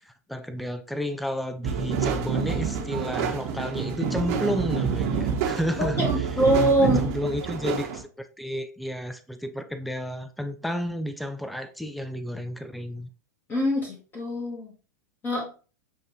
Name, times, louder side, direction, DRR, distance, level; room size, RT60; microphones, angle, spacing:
voice 1, 0.0-6.0 6.8-13.1, equal, ahead, 0.4 m, -32 dB
sound 1, 1.6-8.0, right 6 dB, 50° right, 1.0 m, -27 dB
voice 2, 5.8-7.0 13.5-14.7 15.2-15.4, right 1 dB, 20° left, 1.2 m, -24 dB
7.0 x 2.6 x 3.0 m
hypercardioid pair, 100°, 10 cm